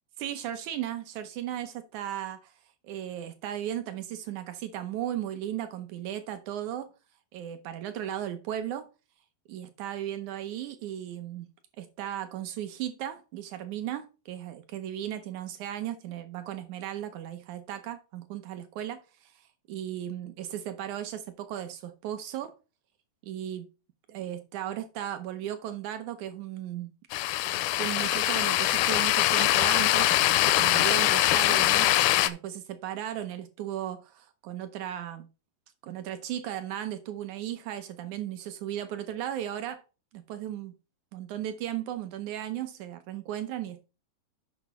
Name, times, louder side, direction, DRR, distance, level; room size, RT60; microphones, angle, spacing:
voice 1, 0.2-2.5 2.8-6.9 7.3-8.9 9.5-11.5 11.8-19.3 19.7-22.5 23.2-23.7 24.1-26.9 27.8-35.3 35.8-39.8 40.1-40.7 41.1-43.8, right 11 dB, 75° right, 1.8 m, -36 dB
sound 1, 27.1-32.3, left 15 dB, 85° left, 2.4 m, -23 dB
8.2 x 5.8 x 4.2 m
omnidirectional pair, 4.2 m